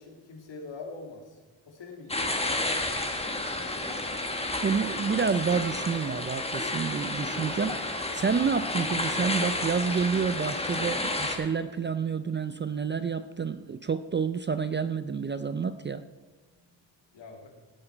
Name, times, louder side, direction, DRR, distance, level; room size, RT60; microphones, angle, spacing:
voice 1, 0.0-1.4 1.6-2.8 3.2-3.8 16.5-16.8 17.1-17.5, left 3 dB, 70° left, 1 dB, 2.5 m, -45 dB
sound 1, 2.1-11.3, left 2 dB, 15° left, 1.5 m, -31 dB
voice 2, 4.6-16.0, right 6 dB, 25° right, 12 dB, 0.3 m, -29 dB
17.0 x 7.8 x 4.5 m, 1.3 s
cardioid pair, 100°, 45 cm